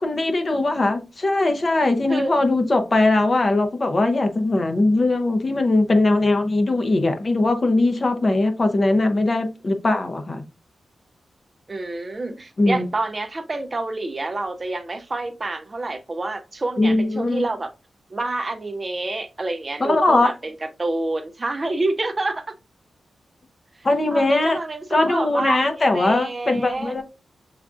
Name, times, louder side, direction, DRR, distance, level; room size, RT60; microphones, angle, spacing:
voice 1, 0.0-10.4 12.6-12.9 16.8-17.5 19.8-20.3 23.8-24.6 24.9-27.0, left 2 dB, 35° left, 0.6 m, -20 dB
voice 2, 11.7-17.7 18.1-22.4 23.8-26.9, right 2 dB, 30° right, 0.4 m, -28 dB
6.7 x 2.4 x 2.3 m
wide cardioid pair, 135°, 0 cm